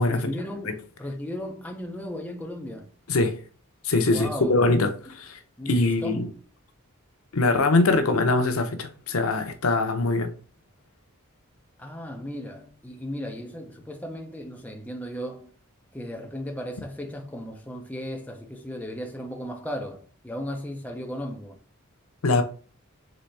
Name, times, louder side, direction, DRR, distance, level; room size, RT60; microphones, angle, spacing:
voice 1, 0.0-2.9 4.0-4.6 5.6-6.4 11.8-15.5 15.9-21.6, equal, 5° left, 0.6 m, -36 dB
voice 2, 3.1-3.4 3.8-5.4 5.7-6.3 7.3-10.3 22.2-22.4, left 2 dB, 80° left, 0.7 m, -22 dB
4.0 x 3.4 x 3.2 m
head